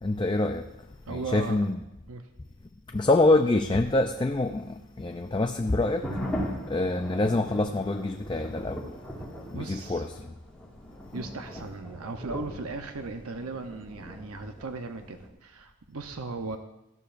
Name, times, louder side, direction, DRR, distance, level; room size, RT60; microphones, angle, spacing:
voice 1, 0.0-0.7 1.1-1.8 2.9-8.9 9.5-10.3, left 2 dB, 20° left, 0.4 m, -26 dB
voice 2, 1.1-1.6 2.1-2.3 9.5-10.1 11.1-16.6, right 3 dB, 80° right, 0.8 m, -37 dB
sound 1, 5.8-15.3, equal, 5° left, 1.9 m, -39 dB
17.0 x 13.5 x 2.5 m
head